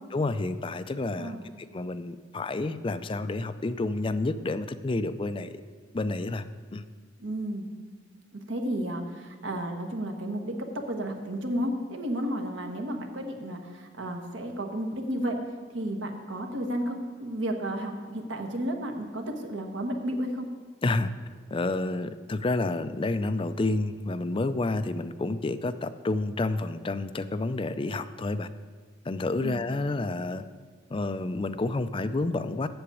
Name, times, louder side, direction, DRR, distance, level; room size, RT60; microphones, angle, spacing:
voice 1, 0.1-5.6 5.9-6.5 6.7-6.8 20.8-21.1 21.5-28.5 29.1-30.4 30.9-32.7, left 2 dB, 25° left, 11 dB, 0.4 m, -29 dB
voice 2, 7.2-7.7 8.3-15.4 15.7-20.5 29.4-29.6, right 1 dB, 75° right, 3 dB, 1.2 m, -32 dB
7.9 x 7.0 x 8.3 m, 1.5 s
head